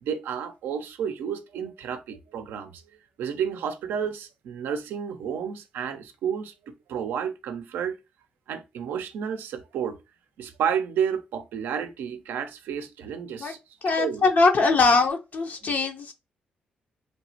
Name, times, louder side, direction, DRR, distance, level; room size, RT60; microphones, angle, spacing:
voice 1, 0.0-2.8 3.2-8.0 8.5-10.0 10.4-13.6 13.9-14.3 15.6-15.7, right 8 dB, 85° right, 0.4 m, -31 dB
voice 2, 13.8-16.1, left 3 dB, 55° left, 0.5 m, -22 dB
3.2 x 2.0 x 2.6 m
supercardioid pair, 55°, 3 cm